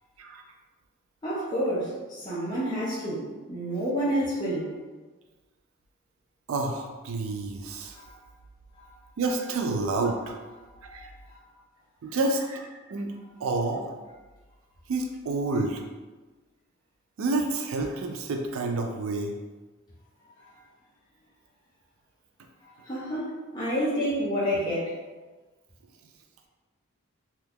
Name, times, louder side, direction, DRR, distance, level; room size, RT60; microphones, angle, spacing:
voice 1, 1.2-4.7 7.9-8.1 8.7-8.8 11.3-11.4 20.4-20.5 22.6-24.9, equal, 20° left, -9 dB, 0.6 m, -29 dB
voice 2, 6.5-8.0 9.2-10.4 10.8-11.1 12.0-13.1 13.4-13.9 14.9-15.8 17.2-19.4, right 3 dB, 65° right, 3 dB, 0.4 m, -29 dB
2.7 x 2.3 x 3.5 m, 1.3 s
head